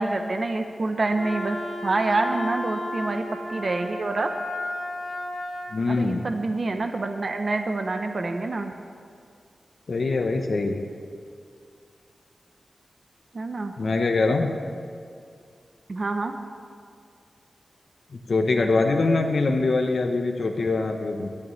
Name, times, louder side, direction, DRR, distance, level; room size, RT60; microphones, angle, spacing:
voice 1, 0.0-1.6 1.8-4.3 5.9-8.7 13.3-13.7 15.9-16.3, right 2 dB, 45° right, 6 dB, 0.7 m, -27 dB
Wind instrument woodwind instrument, 1.1-5.7, left 1 dB, 15° right, 3.7 m, -33 dB
voice 2, 5.7-6.2 9.9-10.8 13.8-14.5 18.1-21.3, left 3 dB, 55° left, 3 dB, 0.8 m, -23 dB
17.0 x 11.5 x 3.2 m, 2.3 s
wide cardioid pair, 120°, 0 cm